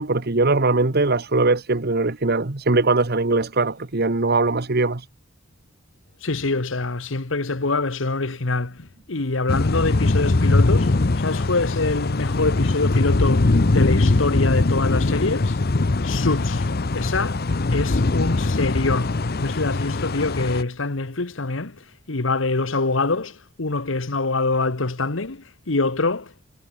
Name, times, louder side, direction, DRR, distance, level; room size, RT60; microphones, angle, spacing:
voice 1, 0.0-5.1, right 3 dB, 55° right, 1.4 m, -21 dB
voice 2, 6.2-15.6 16.0-26.4, left 3 dB, 75° left, 1.4 m, -25 dB
sound 1, 9.5-20.6, left 2 dB, 55° left, 0.8 m, -21 dB
head